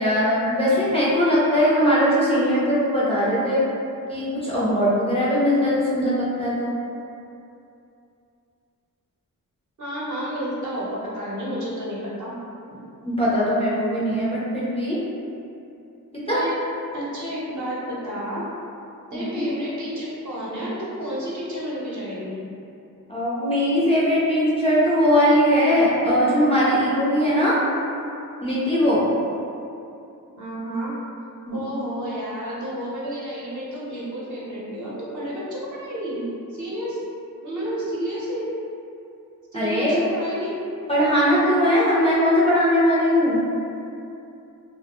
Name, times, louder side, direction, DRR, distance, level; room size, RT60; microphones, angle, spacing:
voice 1, 0.0-3.6 4.1-6.7 13.0-15.0 16.3-16.5 19.1-19.4 23.1-27.6 28.4-29.1 31.5-31.6 39.5-40.0 40.9-43.4, equal, 15° left, -9 dB, 0.4 m, -20 dB
voice 2, 9.8-12.3 12.7-12.8 14.1-14.2 16.3-16.5 16.9-18.5 19.1-22.4 30.3-30.9 31.5-36.2 36.5-37.0 37.4-38.5 39.5-40.5, equal, 55° right, -7 dB, 0.7 m, -31 dB
2.3 x 2.1 x 2.9 m, 2.7 s
wide cardioid pair, 115°, 36 cm